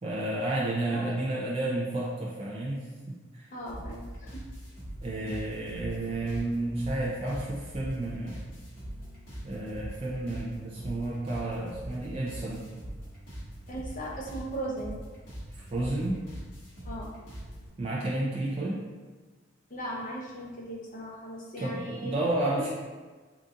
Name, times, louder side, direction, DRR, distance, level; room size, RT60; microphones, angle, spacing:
voice 1, 0.0-3.5 5.0-8.6 9.4-12.7 15.5-16.2 17.8-18.9 21.6-22.7, right 2 dB, 30° right, -5 dB, 0.4 m, -31 dB
voice 2, 0.9-1.2 3.5-4.4 13.7-15.0 16.8-17.1 19.7-22.2 22.4-22.7, right 1 dB, 40° left, -4 dB, 0.7 m, -38 dB
sound 1, 3.6-17.7, equal, 65° left, 1.5 m, -42 dB
3.9 x 2.4 x 3.7 m, 1.4 s
head